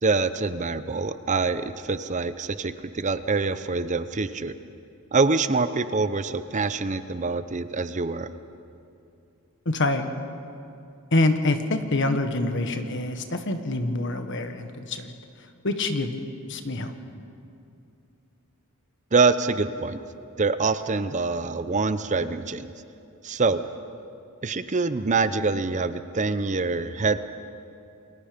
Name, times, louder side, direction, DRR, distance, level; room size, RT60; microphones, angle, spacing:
voice 1, 0.0-4.5 5.1-8.3 19.1-20.0 20.4-22.7 23.2-23.6 24.4-27.2, right 4 dB, 35° right, 12 dB, 0.6 m, -25 dB
voice 2, 9.6-10.1 11.1-15.1 15.6-16.2 16.5-16.9, left 2 dB, 55° left, 7 dB, 1.5 m, -26 dB
28.5 x 22.0 x 5.2 m, 2.6 s
head